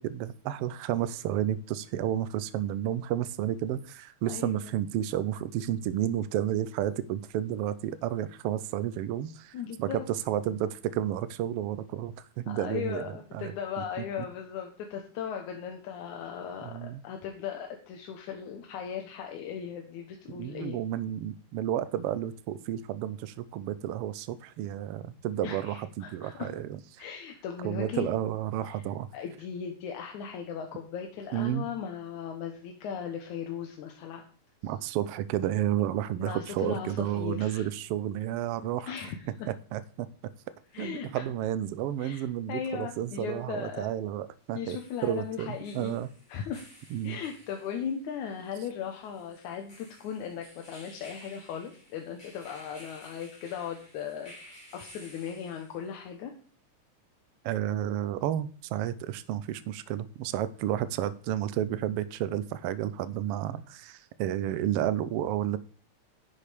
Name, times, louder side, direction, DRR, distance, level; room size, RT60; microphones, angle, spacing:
voice 1, 0.0-13.5 16.6-17.0 20.3-27.0 27.6-29.1 31.3-31.7 34.6-38.9 39.7-40.1 40.8-44.8 45.0-46.1 46.9-47.2 57.4-65.6, right 11 dB, 80° right, 1.3 m, -31 dB
voice 2, 4.3-4.6 9.5-10.1 12.5-20.8 25.4-26.5 27.0-28.1 28.7-28.8 29.1-34.2 36.2-37.7 38.8-39.5 40.7-41.2 42.0-43.9 44.5-46.0 46.3-46.6 47.0-56.3, left 8 dB, 90° left, 2.5 m, -38 dB
sound 1, 41.8-41.9 44.4-56.0, equal, 15° left, 3.4 m, -54 dB
10.5 x 6.5 x 5.0 m
omnidirectional pair, 3.3 m